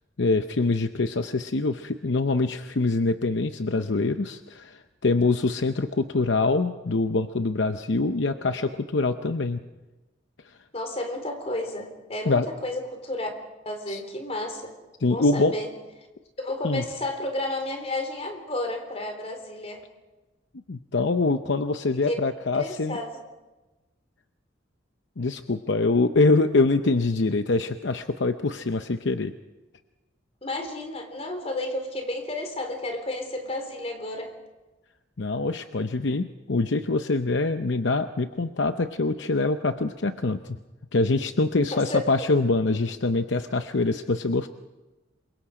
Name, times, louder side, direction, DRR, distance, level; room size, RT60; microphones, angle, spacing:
voice 1, 0.2-9.6 10.4-10.6 12.3-12.5 13.9-14.0 15.0-15.5 16.6-16.8 20.7-23.0 25.2-29.3 35.2-40.6 40.9-44.5, left 3 dB, 65° left, 8 dB, 0.7 m, -24 dB
voice 2, 10.7-13.3 13.7-14.7 15.1-15.7 16.4-19.8 22.1-22.2 22.5-23.1 30.4-34.3 41.7-42.0, left 1 dB, 35° left, 4 dB, 3.8 m, -32 dB
28.0 x 23.5 x 5.0 m, 1.1 s
head